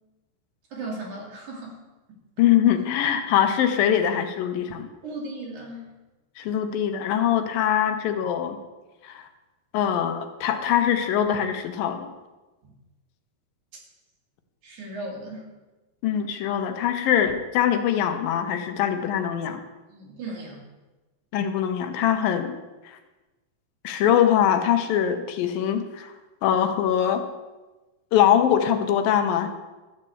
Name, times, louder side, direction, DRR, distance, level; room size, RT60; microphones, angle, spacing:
voice 1, 0.7-1.8 5.0-5.9 12.6-12.7 14.6-15.5 19.9-20.6, right 2 dB, 60° right, -2 dB, 3.4 m, -36 dB
voice 2, 2.4-4.9 6.4-8.6 9.0-9.2 9.7-12.1 16.0-19.6 21.3-22.6 23.8-26.1 26.4-27.2 28.1-29.5, left 9 dB, 85° left, 7 dB, 2.6 m, -22 dB
12.5 x 4.4 x 7.7 m, 1.1 s
omnidirectional pair, 4.0 m